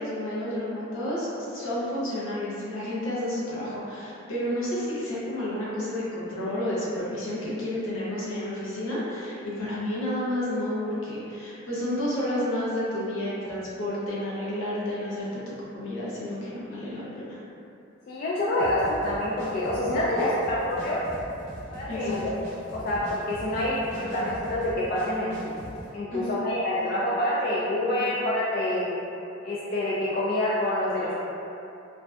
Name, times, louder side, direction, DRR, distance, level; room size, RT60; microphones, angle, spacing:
voice 1, 0.0-15.4 15.7-17.4 21.9-22.2 26.1-26.5 27.9-28.1, left 1 dB, 80° left, -8 dB, 0.7 m, -31 dB
voice 2, 18.1-21.0 21.7-22.3 22.7-25.5 25.9-28.9 29.4-31.1, left 1 dB, 45° left, -7 dB, 0.3 m, -27 dB
sound 1, 18.6-25.9, equal, 35° right, 0.8 m, -41 dB
2.5 x 2.2 x 2.2 m, 2.7 s
head